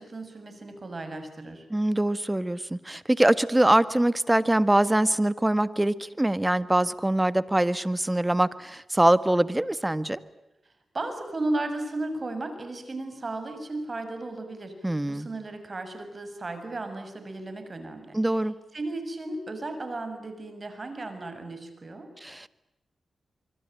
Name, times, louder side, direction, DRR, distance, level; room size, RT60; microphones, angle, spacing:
voice 1, 0.0-1.7 10.9-18.2 18.7-22.1, right 2 dB, 45° right, 8 dB, 6.6 m, -35 dB
voice 2, 1.7-10.2 14.8-15.3 18.1-18.5 22.2-22.5, right 1 dB, 15° right, 14 dB, 1.6 m, -23 dB
25.0 x 24.5 x 9.2 m, 0.94 s
cardioid pair, 50°, 0 cm